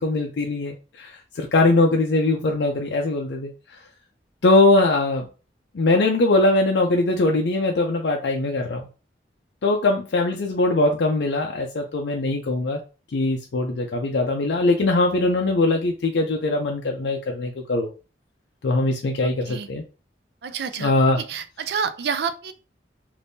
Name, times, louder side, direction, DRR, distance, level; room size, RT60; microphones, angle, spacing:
voice 1, 0.0-3.5 4.4-5.3 5.7-8.8 9.6-12.8 13.1-17.9 18.6-19.8 20.8-21.2, left 2 dB, 70° left, 1 dB, 0.4 m, -21 dB
voice 2, 19.2-19.7 20.4-20.9 21.3-22.5, right 6 dB, 65° right, 10 dB, 0.4 m, -28 dB
2.6 x 2.6 x 3.5 m, 0.34 s
head